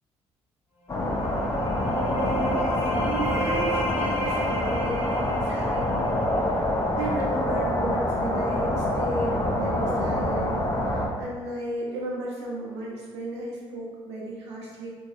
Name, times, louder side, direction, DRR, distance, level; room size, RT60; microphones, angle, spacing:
sound 1, 0.9-6.6, right 1 dB, 65° left, 1.1 m, -32 dB
sound 2, 0.9-11.1, left 1 dB, 25° left, 0.4 m, -26 dB
voice 1, 2.5-6.6 6.9-14.9, right 1 dB, 85° right, -3 dB, 0.4 m, -34 dB
2.6 x 2.3 x 2.2 m, 1.5 s
hypercardioid pair, 45°, 14 cm